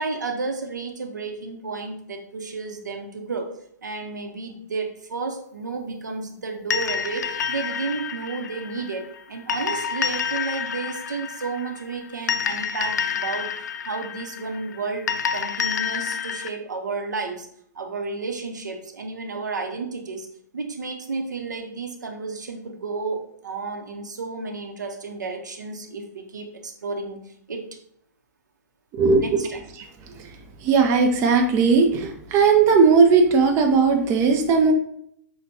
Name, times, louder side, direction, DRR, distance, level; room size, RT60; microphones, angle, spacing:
voice 1, 0.0-3.5 3.8-13.5 13.8-17.5 17.7-20.3 20.5-27.8 29.1-29.6, right 4 dB, 80° right, 4 dB, 0.7 m, -32 dB
sound 1, 6.7-16.5, left 7 dB, 70° left, 0.4 m, -29 dB
voice 2, 28.9-29.4 30.6-34.7, right 5 dB, 30° right, 4 dB, 0.5 m, -17 dB
6.6 x 2.2 x 2.7 m, 0.68 s
figure-of-eight pair, 115°, 10 cm